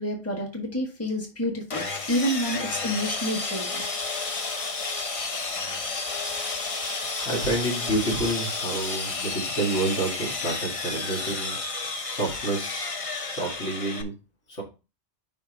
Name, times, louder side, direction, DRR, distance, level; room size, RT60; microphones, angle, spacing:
voice 1, 0.0-3.8, equal, 10° left, -1 dB, 1.4 m, -29 dB
Sawing, 1.7-14.0, left 3 dB, 35° left, 0.7 m, -31 dB
voice 2, 7.2-12.9 13.3-14.1 14.5-14.6, right 2 dB, 75° left, -2 dB, 2.5 m, -29 dB
5.2 x 4.2 x 5.1 m, 0.30 s
omnidirectional pair, 1.2 m